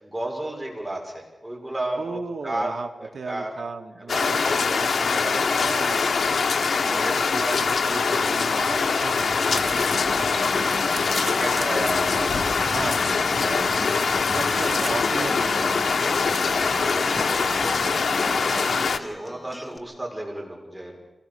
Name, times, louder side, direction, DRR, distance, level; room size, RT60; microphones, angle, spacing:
voice 1, 0.0-2.7 3.0-3.5 4.1-4.3 4.6-5.2 5.5-6.0 6.3-7.6 7.9-8.1 10.1-10.3 11.0-12.7 14.3-14.4 14.8-15.3 16.0-21.0, right 1 dB, 10° right, 0 dB, 5.5 m, -34 dB
voice 2, 2.0-2.9 3.1-6.1 6.8-9.4 12.7-15.9, right 4 dB, 75° right, 5 dB, 1.8 m, -35 dB
sound 1, 4.1-19.0, left 5 dB, 85° left, 1.1 m, -23 dB
sound 2, 9.5-18.9, right 3 dB, 40° right, 0.9 m, -38 dB
Acoustic guitar, 11.8-19.8, left 1 dB, 15° left, 1.8 m, -43 dB
25.0 x 18.0 x 6.9 m, 1.1 s
wide cardioid pair, 130°, 0 cm